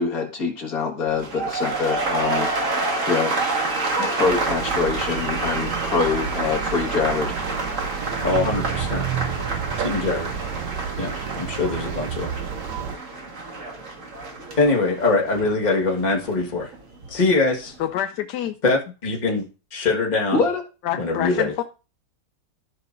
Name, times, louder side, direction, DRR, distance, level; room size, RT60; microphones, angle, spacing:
voice 1, 0.0-3.3 4.1-7.4 20.3-20.6, left 4 dB, 60° left, 1 dB, 2.0 m, -25 dB
sound 1, 1.1-17.1 17.4-17.9, right 3 dB, 50° right, 2.0 m, -28 dB
sound 2, 4.2-13.0, right 8 dB, 80° right, 1.3 m, -30 dB
voice 2, 8.2-9.1 9.8-10.3 11.0-12.3 14.6-16.7 17.1-17.7 18.6-19.4 19.7-20.4 21.0-21.5, left 3 dB, 25° left, 0 dB, 1.6 m, -23 dB
voice 3, 17.8-18.5 20.8-21.6, left 11 dB, 80° left, 8 dB, 1.2 m, -26 dB
14.0 x 5.9 x 2.5 m, 0.33 s
omnidirectional pair, 1.8 m